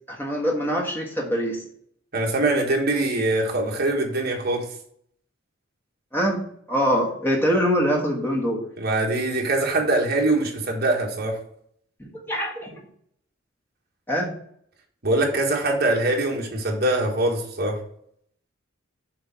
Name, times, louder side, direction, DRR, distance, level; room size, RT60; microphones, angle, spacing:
voice 1, 0.1-1.6 6.1-6.4 6.7-8.7 12.0-12.7 14.1-14.3, equal, 10° left, -1 dB, 1.4 m, -24 dB
voice 2, 2.1-4.7 8.8-11.4 15.0-17.8, right 2 dB, 50° right, 0 dB, 1.5 m, -23 dB
6.7 x 3.5 x 5.8 m, 0.66 s
head